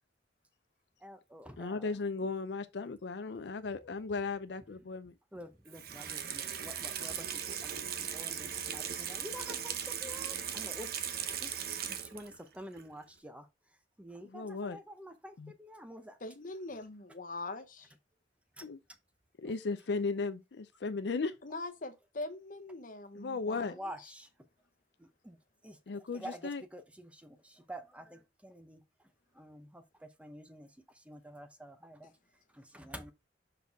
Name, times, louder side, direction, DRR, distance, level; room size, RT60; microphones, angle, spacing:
voice 1, 1.0-1.9 5.3-9.7 10.0-11.1 11.4-13.4 14.0-16.2 18.6-18.7 23.8-24.3 25.0-25.4 25.6-26.4 26.7-28.8 29.4-30.7 31.1-32.1 32.6-33.1, equal, 5° right, 0.6 m, -48 dB
voice 2, 1.6-5.1 14.2-14.8 15.4-15.5 18.6-18.8 19.4-21.3 23.1-23.8 25.9-26.6, left 4 dB, 65° left, 0.5 m, -36 dB
Water tap faucet / Sink (filling or washing), 5.7-12.4 12.8-12.9, right 8 dB, 55° right, 0.8 m, -38 dB
voice 3, 16.2-17.9 21.4-23.7, left 2 dB, 45° left, 0.9 m, -42 dB
5.5 x 4.2 x 4.5 m
head